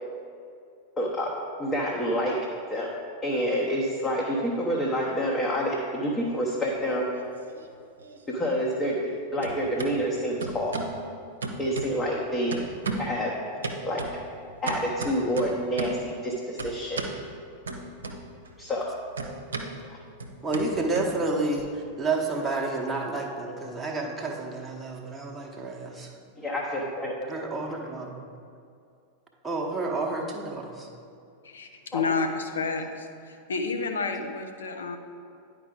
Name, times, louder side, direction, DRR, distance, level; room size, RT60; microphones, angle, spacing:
voice 1, 1.0-1.3 1.6-2.4 2.7-2.9 3.2-7.1 8.3-10.7 11.6-12.6 13.0-13.3 13.8-14.2 14.6-17.0 18.6-18.9 19.9-20.0 26.4-27.3 31.9-32.0, equal, 20° left, -3 dB, 0.9 m, -28 dB
sound 1, 6.3-7.2 7.5-9.1 9.4-9.9 10.4-11.0 11.4-12.2 12.5-13.2 13.6-16.1 16.6-17.2 17.7-18.5 18.7-21.6, right 3 dB, 70° right, 0.7 m, -36 dB
voice 2, 20.4-26.1 27.3-28.2 29.4-30.9, right 3 dB, 10° right, -2 dB, 0.9 m, -30 dB
voice 3, 31.4-35.0, left 4 dB, 70° left, 5 dB, 0.6 m, -30 dB
10.0 x 4.7 x 3.8 m, 2.4 s
figure-of-eight pair, 90°, 0 cm